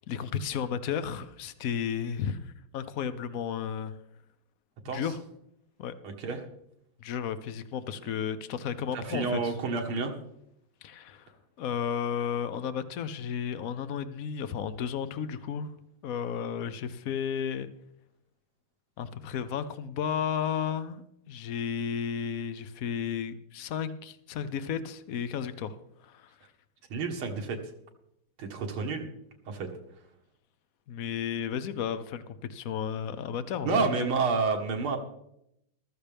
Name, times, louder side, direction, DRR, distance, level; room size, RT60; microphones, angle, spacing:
voice 1, 0.1-4.0 4.9-5.2 5.8-5.9 7.0-9.5 10.8-11.3 11.6-15.7 16.0-17.7 19.0-26.3 30.9-33.9, left 8 dB, 70° left, 12 dB, 0.8 m, -33 dB
voice 2, 6.0-6.5 8.9-10.1 26.9-27.7 28.4-29.1 29.5-29.7 33.7-35.0, right 4 dB, 85° right, 2 dB, 2.4 m, -29 dB
14.5 x 13.5 x 3.4 m, 0.79 s
omnidirectional pair, 2.3 m